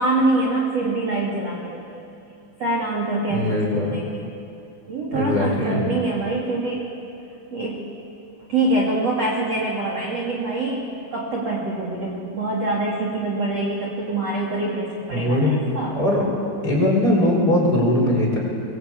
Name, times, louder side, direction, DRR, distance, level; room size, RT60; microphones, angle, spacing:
voice 1, 0.0-2.1 2.6-4.3 4.9-6.8 7.5-7.9 8.5-16.0, right 2 dB, 40° right, -2 dB, 3.2 m, -25 dB
voice 2, 3.3-3.9 5.1-5.8 15.1-15.5 15.9-16.3 16.6-18.4, left 1 dB, 20° left, -2 dB, 5.4 m, -20 dB
25.0 x 22.0 x 8.7 m, 2.5 s
omnidirectional pair, 5.2 m